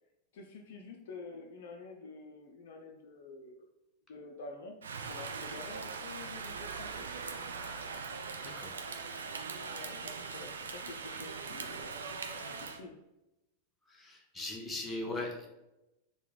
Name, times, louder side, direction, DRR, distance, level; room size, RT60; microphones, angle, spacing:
voice 1, 0.3-3.6 4.1-4.8 5.1-7.1 9.7-11.9 12.4-13.0 15.0-15.3, left 3 dB, 55° left, 2 dB, 0.3 m, -48 dB
Rain, 4.8-12.8, right 5 dB, 70° right, 0.3 m, -41 dB
voice 2, 13.9-15.5, left 2 dB, 10° left, -2 dB, 0.7 m, -39 dB
3.4 x 2.1 x 3.1 m, 0.95 s
figure-of-eight pair, 90°, 0 cm